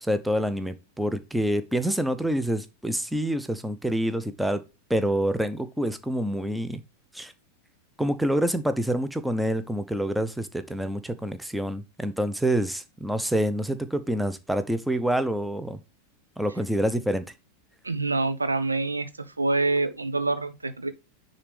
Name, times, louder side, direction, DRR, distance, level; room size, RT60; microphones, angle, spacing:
voice 1, 0.0-4.6 4.9-6.8 7.1-7.3 8.0-15.8 16.4-17.2, right 1 dB, 5° right, 0.8 m, -27 dB
voice 2, 17.8-19.1 19.4-20.9, right 3 dB, 80° right, 1.0 m, -26 dB
9.9 x 4.0 x 3.4 m
figure-of-eight pair, 90°, 0 cm